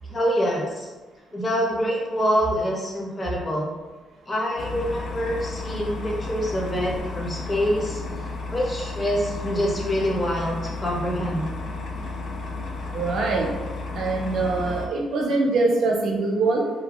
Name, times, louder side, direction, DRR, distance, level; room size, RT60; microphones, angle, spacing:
voice 1, 0.1-0.9 1.3-3.7 4.3-8.0 8.5-11.5, equal, 25° left, -2 dB, 0.7 m, -25 dB
sound 1, 4.6-14.9, left 3 dB, 60° left, 0.4 m, -33 dB
voice 2, 12.9-13.5 13.9-16.7, right 3 dB, 65° right, 0 dB, 0.6 m, -23 dB
2.6 x 2.0 x 2.9 m, 1.2 s
cardioid pair, 90°, 0 cm